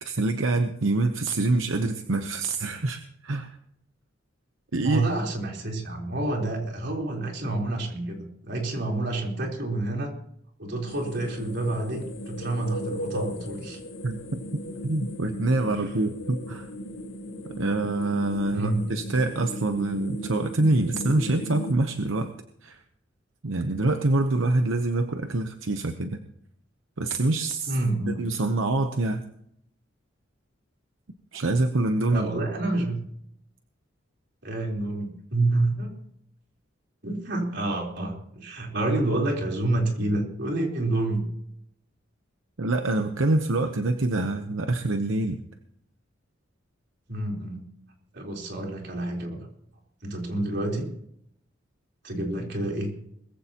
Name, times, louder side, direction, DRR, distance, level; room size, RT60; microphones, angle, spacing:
voice 1, 0.0-3.5 4.7-5.0 14.0-14.4 14.8-16.7 17.4-22.3 22.6-22.8 23.4-26.2 27.0-27.8 28.1-29.2 31.3-32.3 42.6-45.4, right 2 dB, 85° right, 7 dB, 0.9 m, -25 dB
voice 2, 4.8-10.1 10.6-13.8 15.7-15.9 18.5-18.8 27.7-28.2 32.0-33.0 34.4-36.0 37.0-41.2 47.1-47.6 48.1-49.4 50.0-50.9 52.0-52.9, right 2 dB, 60° right, 0 dB, 3.9 m, -28 dB
sound 1, 10.9-21.7, left 1 dB, 80° left, 1.8 m, -37 dB
21.0 x 15.0 x 3.0 m, 0.71 s
head